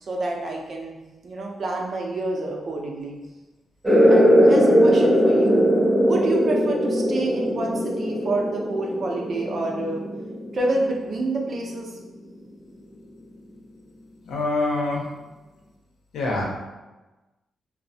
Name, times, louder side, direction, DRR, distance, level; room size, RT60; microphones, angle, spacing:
voice 1, 0.1-1.0 1.2-3.2 4.1-5.7 6.0-10.0 10.5-12.0, right 2 dB, 55° right, -1 dB, 0.6 m, -28 dB
sound 1, 3.8-11.0, equal, 10° right, 0.7 m, -19 dB
voice 2, 14.2-15.0 16.1-16.4, left 2 dB, 90° left, -2 dB, 0.7 m, -25 dB
3.1 x 2.0 x 2.6 m, 1.1 s
cardioid pair, 95°, 0 cm